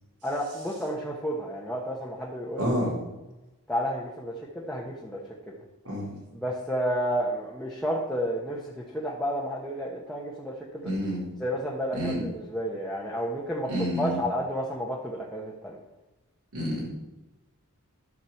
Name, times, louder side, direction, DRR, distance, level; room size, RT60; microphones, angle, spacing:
voice 1, 0.2-2.7 3.7-5.2 5.5-5.6 6.3-10.9 11.4-13.7 14.0-15.8, equal, ahead, -5 dB, 1.2 m, -31 dB
voice 2, 2.6-2.9 5.8-6.2 10.8-11.2 11.9-12.2 13.7-14.2 16.5-16.9, equal, 80° right, -5 dB, 4.4 m, -29 dB
12.5 x 5.2 x 7.2 m, 1.0 s
head